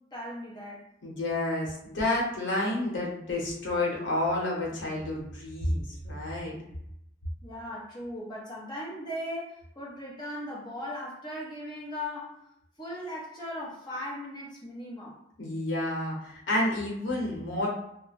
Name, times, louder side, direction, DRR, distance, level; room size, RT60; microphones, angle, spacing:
voice 1, 0.1-0.8 7.4-12.4 12.8-15.2, left 1 dB, 25° left, -6 dB, 0.9 m, -38 dB
voice 2, 1.0-6.5 15.4-17.7, left 1 dB, 80° left, -4 dB, 1.0 m, -30 dB
2.4 x 2.1 x 3.3 m, 0.78 s
head